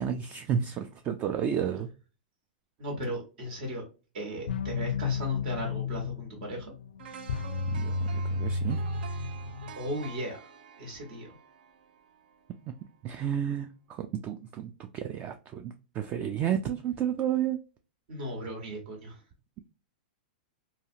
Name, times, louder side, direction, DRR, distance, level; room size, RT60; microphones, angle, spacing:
voice 1, 0.0-1.9 7.7-8.8 12.7-12.8 13.0-17.6, right 9 dB, 30° right, 0.3 m, -31 dB
voice 2, 2.8-3.8 4.1-6.7 9.8-10.4 10.8-11.3 18.1-19.2, equal, 60° right, 1.5 m, -36 dB
sound 1, 4.5-10.1, left 3 dB, 85° left, 0.4 m, -32 dB
sound 2, 7.0-13.0 13.4-13.5, right 7 dB, 80° right, 0.5 m, -49 dB
2.7 x 2.4 x 2.7 m
hypercardioid pair, 135°, 5 cm